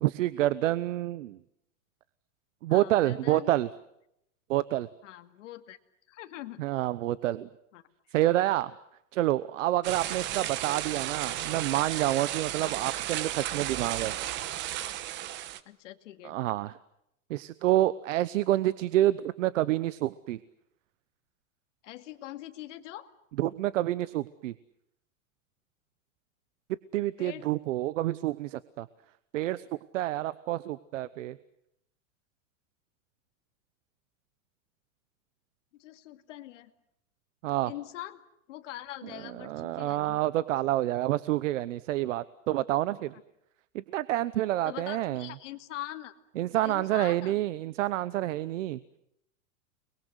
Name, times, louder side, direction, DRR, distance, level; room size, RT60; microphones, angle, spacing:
voice 1, 0.0-1.4 2.6-3.7 4.5-4.9 6.6-7.5 8.1-8.7 9.1-14.1 16.2-16.7 17.3-20.4 23.4-24.5 26.9-28.9 29.3-29.7 29.9-31.4 37.4-37.7 39.4-43.1 43.7-45.3 46.4-48.8, right 15 dB, 70° right, 17 dB, 1.0 m, -28 dB
voice 2, 2.7-3.6 5.0-5.8 6.1-6.6 7.7-7.8 10.1-10.7 12.6-12.7 15.7-16.4 21.8-23.1 27.2-27.5 35.7-36.7 37.6-38.2 38.5-40.2 44.6-46.1 46.6-47.4, left 14 dB, 65° left, 8 dB, 2.4 m, -43 dB
sound 1, 9.8-15.6, right 13 dB, 30° right, 1.1 m, -34 dB
30.0 x 22.0 x 8.1 m, 0.78 s
supercardioid pair, 160°, 40 cm